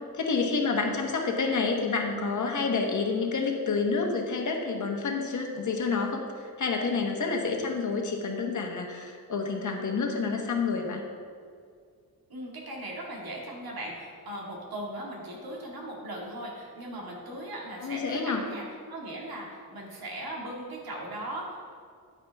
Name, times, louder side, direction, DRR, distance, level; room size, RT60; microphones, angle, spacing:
voice 1, 0.1-11.0 17.8-18.4, left 4 dB, 55° left, 2 dB, 1.2 m, -29 dB
voice 2, 1.4-1.8 12.3-21.7, right 1 dB, 75° right, -2 dB, 2.2 m, -38 dB
9.8 x 8.8 x 3.5 m, 2.1 s
wide cardioid pair, 150°, 37 cm